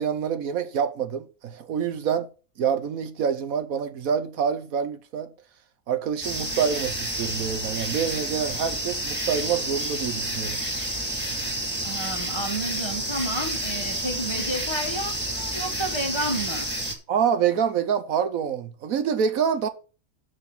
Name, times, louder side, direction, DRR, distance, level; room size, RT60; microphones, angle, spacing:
voice 1, 0.0-2.3 2.6-5.3 5.9-10.6 17.1-19.7, right 7 dB, 75° right, 1.3 m, -26 dB
sound 1, 6.2-16.9, right 1 dB, 5° right, 2.1 m, -30 dB
voice 2, 11.8-16.7, right 1 dB, 20° left, 1.8 m, -31 dB
6.7 x 6.3 x 7.2 m
omnidirectional pair, 1.5 m